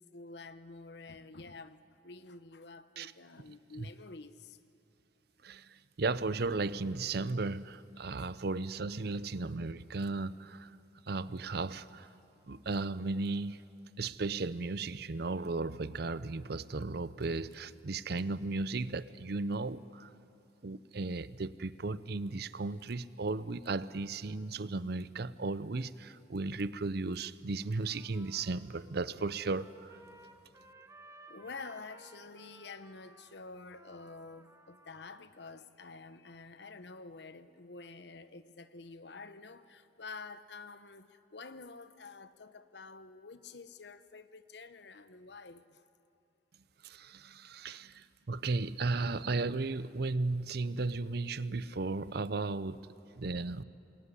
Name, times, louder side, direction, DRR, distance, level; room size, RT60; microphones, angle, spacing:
voice 1, 0.0-4.6 9.0-9.3 31.3-45.8 47.7-48.0, left 4 dB, 65° left, 12 dB, 1.0 m, -49 dB
voice 2, 5.4-10.7 11.1-12.1 12.5-13.6 14.0-20.1 20.6-30.0 46.8-52.8 53.2-53.6, right 3 dB, 60° right, 16 dB, 0.6 m, -35 dB
Trumpet, 27.6-35.3, right 2 dB, 15° right, 1.2 m, -58 dB
26.5 x 21.5 x 9.9 m, 2.8 s
head